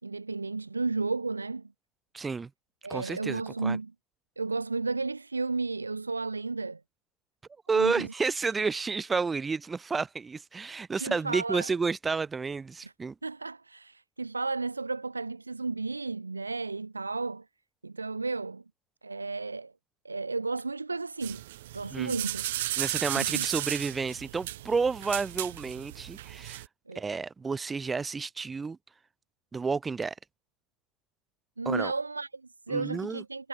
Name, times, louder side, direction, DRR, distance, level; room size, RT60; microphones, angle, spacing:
voice 1, 0.0-1.7 2.8-3.9 4.4-6.8 7.7-8.1 10.9-11.7 12.8-12.9 13.2-17.4 17.8-18.6 19.0-19.7 20.0-21.4 21.7-22.4 23.0-23.5 26.9-27.0 31.6-33.5, right 3 dB, 85° right, 4.5 m, -33 dB
voice 2, 2.1-2.5 2.9-3.8 7.7-13.1 21.9-22.2 22.8-26.6 26.9-28.8 29.5-30.1 31.6-31.9 32.7-33.2, right 4 dB, 20° right, 3.3 m, -31 dB
sound 1, 21.2-26.7, right 15 dB, 65° right, 1.9 m, -35 dB
figure-of-eight pair, 65°, 0 cm